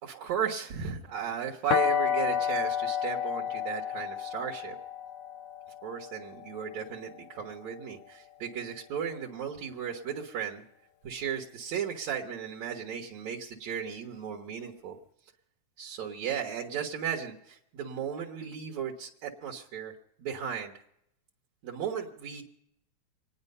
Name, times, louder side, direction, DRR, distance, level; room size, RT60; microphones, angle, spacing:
voice 1, 0.0-4.8 5.8-10.6 11.0-15.0 15.8-19.9 20.2-20.7 21.6-22.4, right 8 dB, 70° right, -1 dB, 2.4 m, -35 dB
sound 1, 1.7-7.5, left 9 dB, 85° left, 2.6 m, -31 dB
26.5 x 9.7 x 5.4 m, 0.78 s
omnidirectional pair, 3.3 m